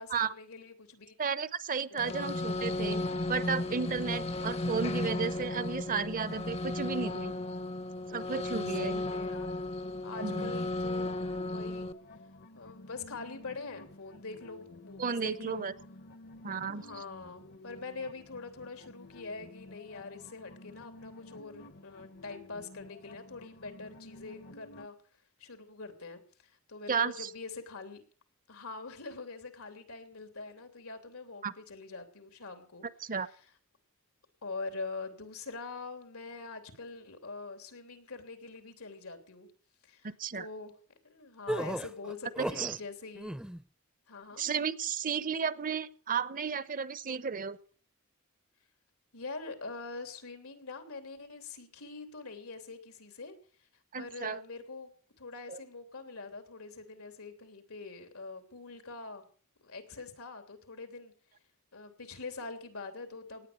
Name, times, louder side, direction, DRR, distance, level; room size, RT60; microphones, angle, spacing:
voice 1, 0.0-1.1 1.9-2.2 8.8-9.7 10.0-11.9 12.5-15.7 16.7-24.9 25.4-28.0 28.5-32.9 33.2-33.5 34.4-39.5 39.8-40.7 41.0-43.4 44.1-44.4 49.1-53.3 54.0-54.9 55.2-59.2 59.6-61.1 61.7-63.5, left 3 dB, 85° left, 8 dB, 3.2 m, -44 dB
voice 2, 1.2-3.0 3.3-7.3 8.1-9.0 10.2-10.5 15.0-15.7 16.4-16.9 26.9-27.3 31.4-31.5 33.0-33.3 40.0-40.5 42.4-42.8 44.4-47.6 53.9-54.4 55.5-55.6, right 6 dB, 40° right, 17 dB, 0.7 m, -33 dB
sound 1, 2.0-11.9, left 2 dB, 30° left, 0.8 m, -34 dB
sound 2, 8.1-24.9, left 2 dB, 50° left, 1.0 m, -52 dB
sound 3, 41.5-42.8 43.1-43.6, right 1 dB, 5° right, 0.6 m, -35 dB
18.0 x 10.0 x 6.9 m, 0.43 s
head